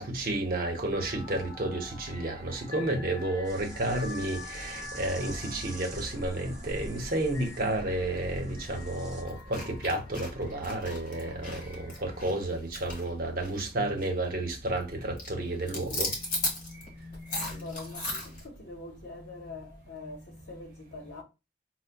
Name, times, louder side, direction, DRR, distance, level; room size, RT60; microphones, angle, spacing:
voice 1, 0.0-16.1 17.1-18.0, right 1 dB, 50° right, 0.8 m, -31 dB
sound 1, 0.9-12.2, left 3 dB, 25° left, 1.5 m, -47 dB
sound 2, 3.4-9.2, right 1 dB, 5° right, 0.9 m, -43 dB
sound 3, 8.7-8.8 9.3-13.7 14.0-14.2 14.5-14.9 15.2-18.4, left 1 dB, 45° left, 1.4 m, -36 dB
voice 2, 17.5-21.2, left 3 dB, 65° left, 0.9 m, -44 dB
5.5 x 2.1 x 2.2 m
head